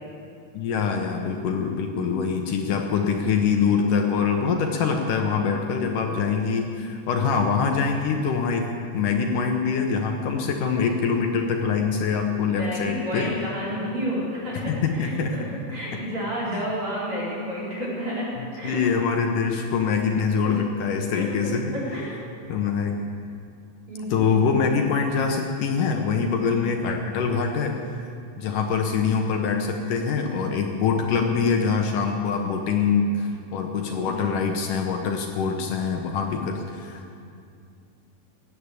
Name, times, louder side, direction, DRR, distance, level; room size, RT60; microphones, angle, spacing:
voice 1, 0.5-8.7 8.9-13.3 14.5-15.3 15.9-16.0 16.5-16.7 18.4-21.8 22.5-23.0 24.1-27.8 28.4-37.2, left 5 dB, 70° left, 3 dB, 2.4 m, -24 dB
voice 2, 12.5-18.8 20.4-20.5 21.1-22.2 23.9-24.5 26.4-26.7 33.9-34.3, equal, 35° right, -7 dB, 5.2 m, -31 dB
17.0 x 10.0 x 8.2 m, 2.4 s
omnidirectional pair, 4.1 m